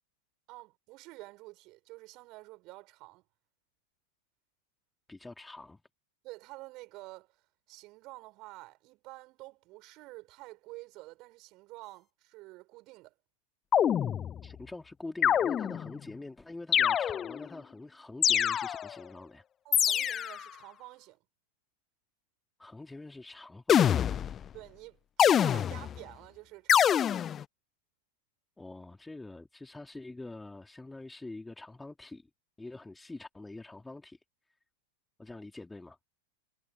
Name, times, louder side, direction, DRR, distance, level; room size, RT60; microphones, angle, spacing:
voice 1, 0.5-3.2 6.2-7.4 7.7-13.1 19.7-21.2 24.5-27.2, right 21 dB, 40° right, 6.8 m, -49 dB
voice 2, 5.1-5.8 14.4-19.4 22.6-24.1 28.6-32.3 32.6-34.2 35.2-36.0, left 2 dB, 5° left, 3.5 m, -45 dB
sound 1, 13.7-14.5 15.2-16.0 16.7-17.5 18.2-19.0 19.7-20.5 23.7-24.5 25.2-26.0 26.7-27.4, left 9 dB, 25° left, 0.3 m, -25 dB
figure-of-eight pair, 90°, 0 cm